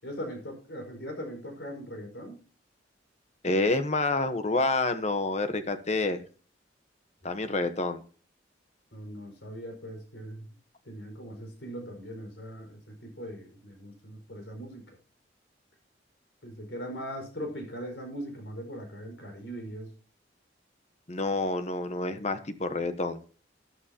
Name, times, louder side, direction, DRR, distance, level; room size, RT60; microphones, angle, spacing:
voice 1, 0.0-2.4 7.2-7.4 8.9-10.5 10.8-15.0 16.4-19.9, equal, 70° left, 4 dB, 5.1 m, -40 dB
voice 2, 3.4-6.2 7.2-8.0 21.1-23.2, left 2 dB, 35° left, 9 dB, 1.1 m, -28 dB
13.5 x 11.0 x 2.9 m, 0.39 s
head